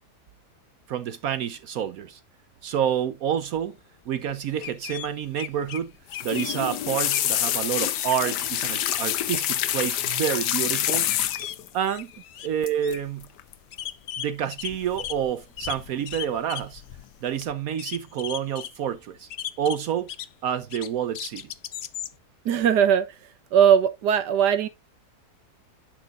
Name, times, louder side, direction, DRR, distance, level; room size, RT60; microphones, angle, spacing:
voice 1, 0.9-2.2 2.6-3.8 4.1-5.9 6.2-11.1 11.7-12.1 12.4-13.3 14.2-16.8 17.2-19.3 19.6-20.1 20.4-21.5, right 9 dB, 70° right, 1.0 m, -28 dB
sound 1, 4.3-4.4 4.6-5.8 6.1-6.6 7.1-7.3 7.7-8.5 8.8-9.4 11.0-11.6 11.9-12.5 12.8-13.0 13.4-13.5 13.7-15.2 15.6-16.8 17.1-17.2 17.7-18.7 19.3-20.3 20.7-22.2, left 10 dB, 70° left, 0.6 m, -37 dB
sound 2, 6.1-11.7 12.6-12.9 13.2-13.5 14.7-15.3 15.6-16.2 16.6-17.0 17.4-17.5, left 12 dB, 90° left, 1.3 m, -27 dB
voice 2, 22.4-23.1 23.5-24.7, right 8 dB, 90° right, 1.5 m, -19 dB
9.9 x 6.3 x 2.4 m
omnidirectional pair, 1.7 m